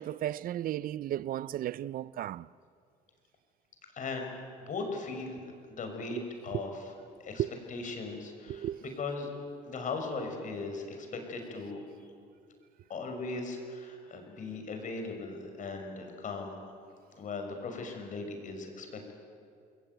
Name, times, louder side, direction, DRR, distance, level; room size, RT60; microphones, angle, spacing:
voice 1, 0.0-2.5 6.1-6.2 6.5-6.6 7.4-7.5 8.5-8.9, right 12 dB, 60° right, 0.6 m, -34 dB
voice 2, 3.9-4.4 4.7-5.4 5.7-6.7 7.2-7.4 7.7-9.3 9.7-11.8 12.9-16.6 17.2-19.1, left 3 dB, 50° left, 5.9 m, -38 dB
28.5 x 21.0 x 9.3 m
cardioid pair, 110°, 17 cm